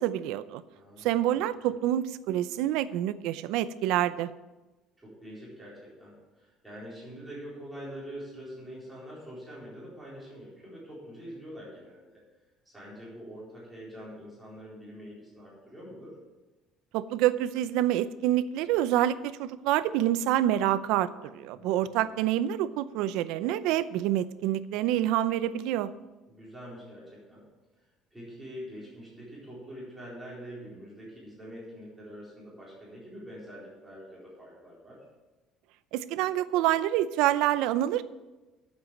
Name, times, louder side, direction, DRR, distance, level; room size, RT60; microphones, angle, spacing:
voice 1, 0.0-0.6 1.0-4.3 16.9-25.9 35.9-38.0, right 12 dB, 80° right, 15 dB, 0.5 m, -27 dB
voice 2, 0.7-1.4 1.7-1.8 5.0-16.2 21.5-21.7 22.0-22.2 26.3-27.4 27.7-35.0, equal, 5° right, -7 dB, 4.2 m, -45 dB
9.0 x 7.5 x 7.5 m, 1.1 s
cardioid pair, 165°, 0 cm